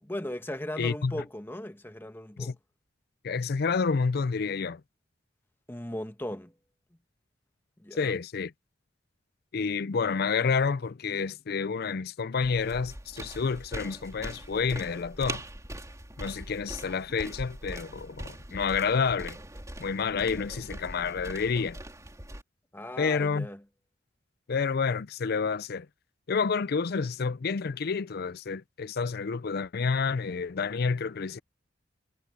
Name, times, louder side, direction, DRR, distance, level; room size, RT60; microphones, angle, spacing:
voice 1, 0.0-2.5 5.7-6.5 7.8-8.1 22.7-23.6, left 1 dB, 10° left, 1.4 m, -37 dB
voice 2, 0.8-1.1 2.4-2.5 3.2-4.8 7.9-8.5 9.5-15.4 16.2-19.4 19.8-21.8 23.0-23.5 24.5-25.9 26.3-31.4, left 5 dB, 55° left, 0.5 m, -29 dB
sound 1, 12.4-22.4, right 1 dB, 15° right, 3.3 m, -42 dB
head